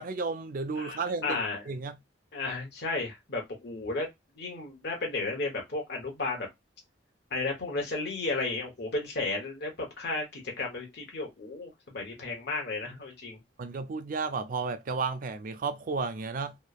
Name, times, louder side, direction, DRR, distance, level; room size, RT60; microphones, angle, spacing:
voice 1, 0.0-2.0 13.6-16.6, right 4 dB, 45° right, 0.4 m, -33 dB
voice 2, 0.8-1.6 2.3-4.1 4.3-6.5 7.3-13.4, left 3 dB, 55° left, 0.9 m, -33 dB
3.0 x 2.0 x 2.3 m
head